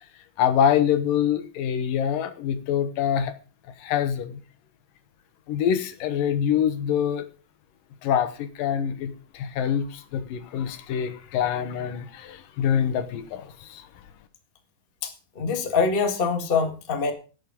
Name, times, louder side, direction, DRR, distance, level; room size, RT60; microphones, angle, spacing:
voice 1, 0.4-3.3 3.8-4.4 5.5-7.3 8.0-13.9, left 9 dB, 80° left, 10 dB, 2.8 m, -25 dB
voice 2, 15.0-17.1, left 5 dB, 25° left, 5 dB, 1.2 m, -24 dB
18.5 x 6.5 x 5.2 m, 0.37 s
omnidirectional pair, 3.9 m